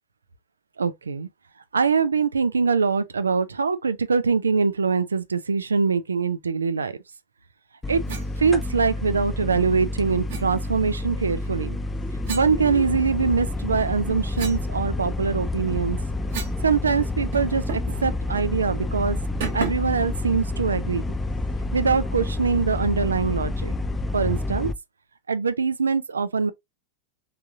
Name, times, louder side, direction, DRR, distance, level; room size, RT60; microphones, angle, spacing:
voice 1, 0.8-1.3 1.7-7.0 7.9-8.0 8.4-11.8 12.3-16.0 16.6-19.2 19.5-21.0 21.7-23.7 24.1-24.7 25.3-26.5, right 5 dB, 75° right, 0.4 m, -23 dB
sound 1, 7.8-24.7, left 2 dB, 10° left, 0.4 m, -29 dB
sound 2, 8.1-8.3 10.3-10.5 12.2-13.3 13.8-16.7 16.9-17.0 17.3-18.0 18.3-18.5 19.4-20.0, right 6 dB, 55° right, 1.2 m, -35 dB
3.5 x 2.8 x 2.3 m
figure-of-eight pair, 90°, 0 cm